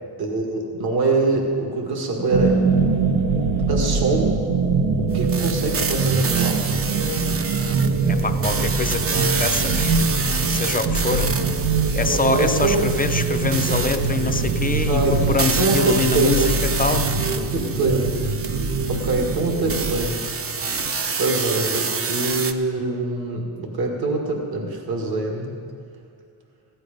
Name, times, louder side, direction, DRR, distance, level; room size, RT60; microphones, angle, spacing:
voice 1, 0.2-2.6 3.7-4.4 5.0-6.6 11.1-11.5 12.1-12.9 14.9-16.7 17.4-18.2 18.9-20.4 21.1-25.5, right 3 dB, 50° right, 1 dB, 1.9 m, -24 dB
sound 1, 2.3-20.1, right 4 dB, 70° right, 1.1 m, -23 dB
sound 2, 5.3-22.5, right 4 dB, 30° right, 0.6 m, -28 dB
voice 2, 8.0-10.0 10.5-11.3 12.0-16.5 16.8-17.1, left 4 dB, 20° left, 7 dB, 0.5 m, -24 dB
15.5 x 11.0 x 5.2 m, 2.2 s
wide cardioid pair, 150°, 48 cm